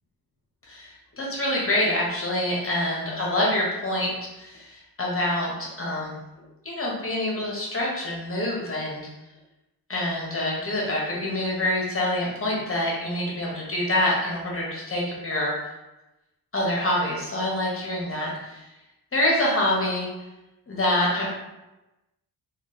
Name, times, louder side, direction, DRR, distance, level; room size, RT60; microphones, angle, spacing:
voice 1, 0.7-6.2 6.6-9.0 9.9-15.5 16.5-18.7 19.1-20.1 20.7-21.3, left 1 dB, 35° left, -3 dB, 1.1 m, -26 dB
3.1 x 2.4 x 3.1 m, 0.99 s
cardioid pair, 80°, 39 cm